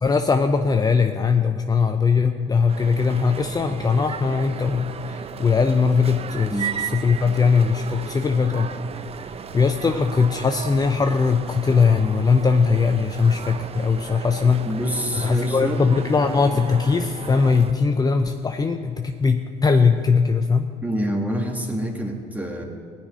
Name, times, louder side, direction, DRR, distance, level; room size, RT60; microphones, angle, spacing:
voice 1, 0.0-8.7 9.5-14.7 15.2-20.7, left 5 dB, 25° left, 6 dB, 0.7 m, -20 dB
sound 1, 2.7-17.7, right 7 dB, 40° right, 0.7 m, -35 dB
voice 2, 6.5-6.8 14.7-15.8 20.8-22.6, equal, 10° right, 1 dB, 2.5 m, -26 dB
17.0 x 6.0 x 9.9 m, 2.2 s
supercardioid pair, 85°, 16 cm